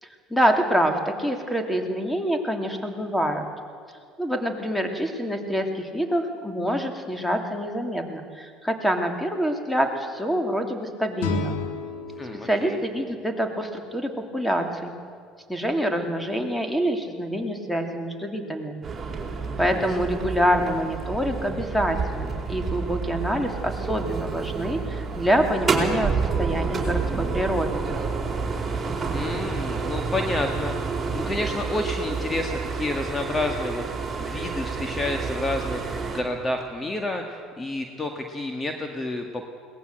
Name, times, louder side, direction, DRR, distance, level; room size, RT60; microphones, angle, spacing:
voice 1, 0.0-3.5 4.2-11.6 12.4-14.9 15.5-18.8 19.6-26.1 26.4-27.8, equal, 5° left, 4 dB, 2.9 m, -26 dB
sound 1, 11.2-14.2, left 4 dB, 90° left, 2.3 m, -33 dB
voice 2, 12.2-12.8 19.7-19.9 29.1-39.4, left 2 dB, 20° left, 4 dB, 1.9 m, -30 dB
sound 2, 18.8-36.2, right 4 dB, 25° right, 4.3 m, -29 dB
21.5 x 18.5 x 8.0 m, 2.2 s
supercardioid pair, 85°, 0 cm